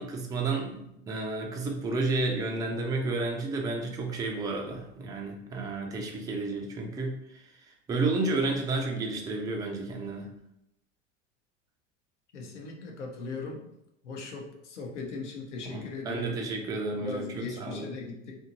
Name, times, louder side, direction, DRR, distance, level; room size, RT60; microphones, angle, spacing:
voice 1, 0.0-7.4 7.9-10.3 15.6-17.9, right 3 dB, 10° right, 1 dB, 0.4 m, -31 dB
voice 2, 12.3-13.6 14.0-16.4 17.0-18.3, left 3 dB, 75° left, 0 dB, 0.9 m, -39 dB
2.7 x 2.6 x 2.7 m, 0.81 s
figure-of-eight pair, 85°, 36 cm